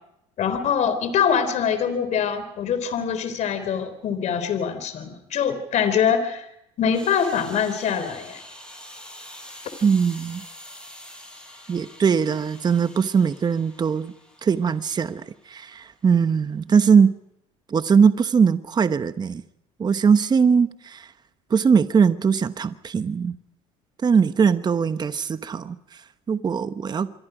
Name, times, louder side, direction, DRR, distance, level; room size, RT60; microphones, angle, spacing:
voice 1, 0.4-6.5 6.8-8.4, left 7 dB, 55° left, 11 dB, 3.8 m, -24 dB
sound 1, 6.9-15.5, left 1 dB, 5° left, 7.7 m, -45 dB
voice 2, 9.8-10.4 11.7-14.1 14.4-17.1 17.7-19.4 19.8-21.1 21.5-23.4 24.0-26.0 26.3-27.1, right 6 dB, 30° right, 12 dB, 1.0 m, -20 dB
27.0 x 23.0 x 5.0 m, 0.79 s
supercardioid pair, 85°, 15 cm